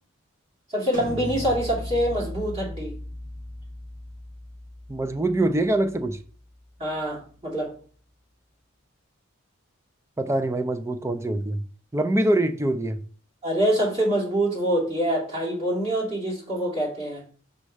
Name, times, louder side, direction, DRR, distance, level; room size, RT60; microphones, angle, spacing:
voice 1, 0.7-2.9 6.8-7.7 13.4-17.2, right 1 dB, 30° right, 2.8 m, -25 dB
sound 1, 0.9-6.6, equal, 65° right, 1.7 m, -37 dB
voice 2, 4.9-6.2 10.2-11.6 11.9-13.0, right 1 dB, 15° right, 0.4 m, -24 dB
5.3 x 4.2 x 4.9 m
head